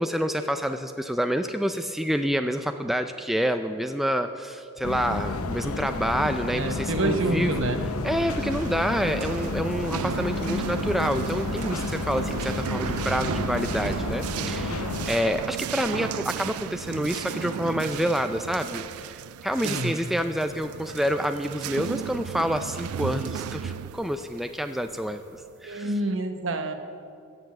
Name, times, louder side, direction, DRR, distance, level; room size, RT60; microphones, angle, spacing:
voice 1, 0.0-7.6 8.0-25.2 25.6-25.9, equal, ahead, 7 dB, 0.3 m, -28 dB
sound 1, 4.8-15.1, left 3 dB, 85° left, 0.8 m, -31 dB
voice 2, 6.5-7.8 19.6-20.0 25.6-26.7, right 2 dB, 60° right, 7 dB, 1.1 m, -27 dB
sound 2, 8.1-25.5, right 8 dB, 85° right, 0.3 m, -35 dB
15.5 x 7.0 x 7.5 m, 2.5 s
head